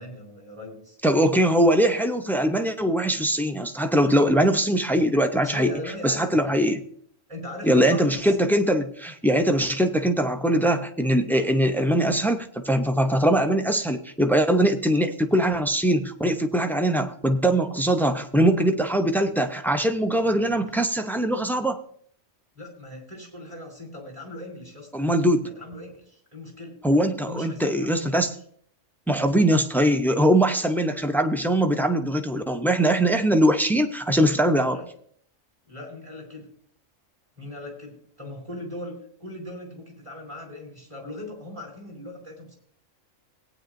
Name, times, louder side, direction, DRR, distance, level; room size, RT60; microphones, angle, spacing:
voice 1, 0.0-1.0 5.4-6.5 7.3-8.6 18.4-18.5 20.2-20.6 22.5-24.9 25.4-26.8 27.2-28.2 34.7-34.9 35.6-36.5 37.4-42.6, left 1 dB, 25° right, 1 dB, 4.6 m, -39 dB
voice 2, 1.0-5.7 6.0-6.8 7.6-21.8 24.9-25.5 26.8-28.3 29.1-34.8, right 1 dB, ahead, 7 dB, 0.4 m, -22 dB
18.0 x 9.4 x 2.6 m, 0.62 s
omnidirectional pair, 1.4 m